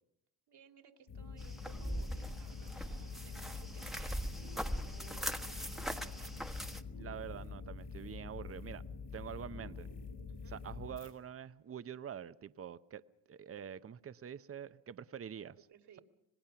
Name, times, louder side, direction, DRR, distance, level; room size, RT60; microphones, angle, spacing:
voice 1, 0.5-4.2 4.5-6.5 10.3-10.6 15.7-16.0, right 7 dB, 65° right, 6 dB, 2.4 m, -61 dB
sound 1, 1.1-11.1, left 4 dB, 75° left, 4.3 m, -46 dB
sound 2, 1.4-6.8, equal, ahead, 1.3 m, -41 dB
voice 2, 6.9-8.8 9.1-9.9 10.5-13.0 13.3-15.6, right 8 dB, 35° right, 14 dB, 0.8 m, -46 dB
26.0 x 19.0 x 5.8 m, 0.83 s
supercardioid pair, 70°, 43 cm